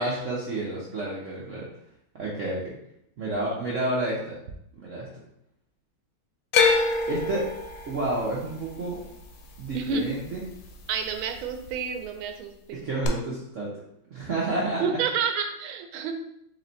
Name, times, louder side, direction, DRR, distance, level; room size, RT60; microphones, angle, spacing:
voice 1, 0.0-1.7 2.1-2.6 3.2-4.4 4.7-5.1 7.1-7.5 7.9-9.0 9.6-10.4 12.7-13.8 14.1-14.8, right 2 dB, 65° right, -5 dB, 0.7 m, -30 dB
sound 1, 6.5-10.7 11.0-11.7 13.0-13.1, left 4 dB, 80° left, 1.5 m, -26 dB
voice 2, 10.9-12.9 14.8-16.2, right 6 dB, 80° right, 6 dB, 1.4 m, -29 dB
4.2 x 3.2 x 4.0 m, 0.76 s
omnidirectional pair, 2.3 m